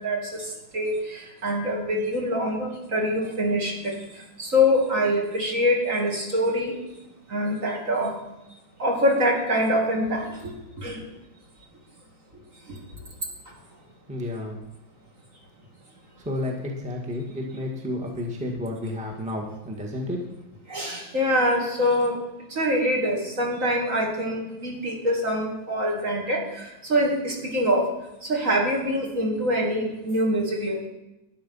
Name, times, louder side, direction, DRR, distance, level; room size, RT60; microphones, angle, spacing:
voice 1, 0.0-6.8 7.3-8.1 8.8-11.0 12.7-12.8 20.7-22.2 22.5-27.9 28.2-30.9, equal, 40° right, -1 dB, 2.6 m, -25 dB
voice 2, 14.1-14.6 16.2-20.2, left 1 dB, 5° right, 0 dB, 1.4 m, -31 dB
12.0 x 10.0 x 5.5 m, 0.94 s
omnidirectional pair, 2.3 m